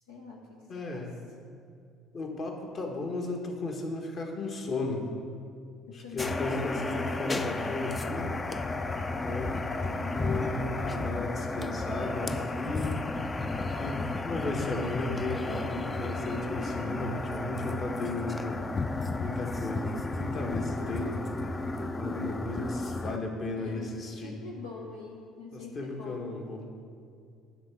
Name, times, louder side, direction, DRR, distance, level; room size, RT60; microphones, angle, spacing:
voice 1, 0.1-0.6 0.9-1.0 5.9-6.8 9.6-10.6 23.5-23.9 24.2-26.3, left 4 dB, 80° left, -2 dB, 0.7 m, -44 dB
voice 2, 0.7-1.2 2.1-5.0 5.9-8.3 9.1-9.5 10.0-13.0 13.8-18.6 19.2-21.2 22.0-24.4 25.5-26.6, left 2 dB, 45° left, 2 dB, 1.4 m, -35 dB
sound 1, 6.2-23.2, left 2 dB, 25° left, 0.5 m, -33 dB
10.5 x 3.7 x 7.2 m, 2.3 s
figure-of-eight pair, 55°, 0 cm